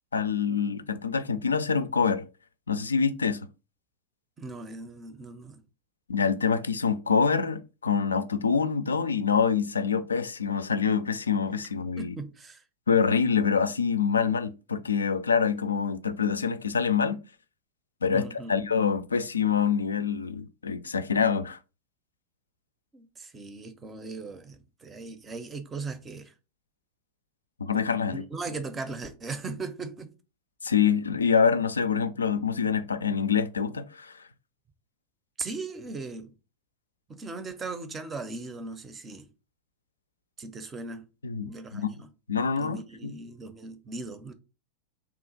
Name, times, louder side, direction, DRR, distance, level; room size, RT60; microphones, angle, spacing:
voice 1, 0.1-2.2 2.7-3.4 6.1-12.1 12.9-17.2 18.0-21.6 27.6-28.2 30.6-34.1 41.2-41.9 42.3-43.1, left 6 dB, 75° left, 0.3 m, -26 dB
voice 2, 4.4-5.6 12.0-12.6 18.1-18.7 22.9-26.3 28.1-30.1 35.4-36.3 37.1-39.3 40.4-41.0 41.4-42.1 42.6-44.3, right 3 dB, 20° right, 0.5 m, -38 dB
2.9 x 2.4 x 3.9 m
figure-of-eight pair, 90°, 0 cm